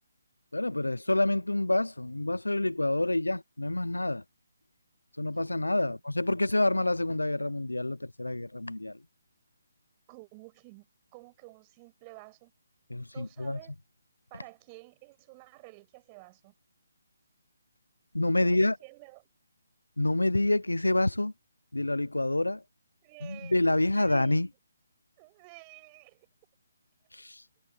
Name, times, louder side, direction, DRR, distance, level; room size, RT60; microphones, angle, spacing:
voice 1, 0.5-4.2 5.2-9.0 12.9-13.6 18.1-18.8 20.0-21.3 21.7-22.6 23.2-24.5 27.1-27.4, left 2 dB, 85° left, 0.5 m, -27 dB
voice 2, 10.1-10.9 11.1-12.5 13.1-13.7 14.3-16.5 18.3-19.3 23.0-23.6 23.9-24.4 25.2-26.3, right 28 dB, 25° right, 6.6 m, -51 dB
figure-of-eight pair, 145°, 0 cm